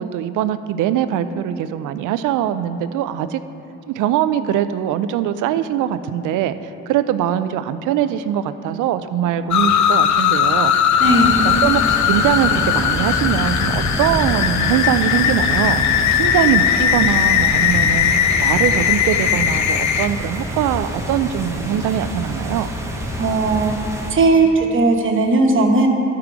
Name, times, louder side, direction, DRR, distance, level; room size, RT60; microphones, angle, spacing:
voice 1, 0.0-3.4 3.9-6.6 6.9-10.7 11.4-18.1 18.4-22.7, right 10 dB, 85° right, 12 dB, 0.5 m, -22 dB
sound 1, 9.5-20.1, left 9 dB, 70° left, 0.5 m, -18 dB
sound 2, 11.0-24.1, equal, 10° right, 1.1 m, -27 dB
voice 2, 11.0-11.4 23.2-23.7 24.1-25.9, right 3 dB, 40° right, 2 dB, 1.2 m, -16 dB
12.5 x 4.7 x 5.0 m, 3.0 s
cardioid pair, 90°, 30 cm